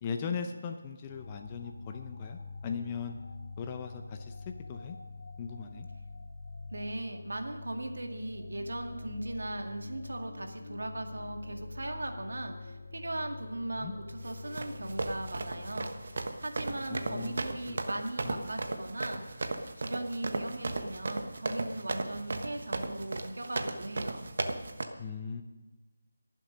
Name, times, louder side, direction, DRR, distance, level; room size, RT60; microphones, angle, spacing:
voice 1, 0.0-3.2 3.6-4.3 4.7-5.0 5.4-5.9 13.7-13.9 16.9-17.4 17.7-17.8 18.2-18.4 25.0-25.4, left 6 dB, 20° left, 4 dB, 0.7 m, -38 dB
sound 1, 1.0-17.4, left 3 dB, 65° left, 3.1 m, -46 dB
voice 2, 6.7-19.4 19.8-24.3, right 1 dB, 75° right, 4 dB, 2.0 m, -38 dB
sound 2, 14.3-24.8, right 2 dB, 55° right, 1.2 m, -36 dB
22.0 x 7.5 x 5.3 m, 1.2 s
figure-of-eight pair, 165°, 0 cm